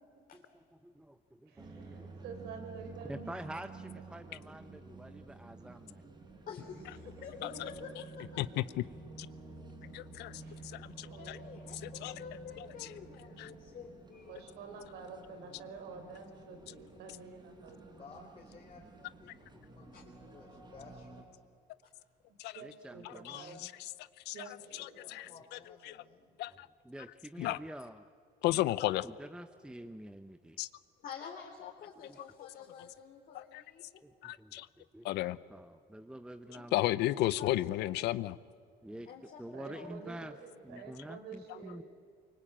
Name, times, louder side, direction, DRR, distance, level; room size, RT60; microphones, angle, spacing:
voice 1, 0.3-2.1 3.1-6.1 10.0-10.1 19.5-19.6 22.6-23.6 24.4-24.5 26.5-26.6 26.8-28.1 28.5-28.6 29.0-30.6 32.1-32.2 34.0-35.1 35.5-36.7 38.8-39.1 39.4-40.3 40.6-41.8, right 1 dB, 5° right, 9 dB, 0.8 m, -47 dB
voice 2, 1.5-4.2 7.0-7.3 7.5-7.7 10.4-10.7 11.0-11.5 14.3-18.0 22.3-23.8 24.3-25.2 38.9-39.0 39.5-41.8, right 5 dB, 80° right, 6 dB, 4.4 m, -49 dB
sound 1, 1.6-21.2, right 3 dB, 25° right, 4.2 m, -51 dB
voice 3, 6.5-7.9 8.2-8.4 10.3-10.4 11.2-14.3 19.9-20.0 31.0-33.8 36.5-36.7 37.4-37.6 37.8-37.9 39.1-39.9, left 6 dB, 55° left, 0 dB, 3.1 m, -48 dB
voice 4, 8.4-8.8 9.2-9.3 9.9-10.4 10.7-11.4 11.8-12.1 12.6-12.9 13.4-13.5 22.4-22.6 23.3-23.4 24.3-24.4 25.1-25.3 25.9-26.0 26.4-26.7 27.4-27.6 28.4-29.1 30.6-30.7 33.3-33.6 34.2-34.7 35.0-35.4 36.7-38.4, left 16 dB, 85° left, 17 dB, 0.7 m, -33 dB
voice 5, 17.9-21.2 24.6-26.3, left 3 dB, 35° left, -3 dB, 3.8 m, -56 dB
24.5 x 24.0 x 8.9 m, 2.1 s
cardioid pair, 110°, 17 cm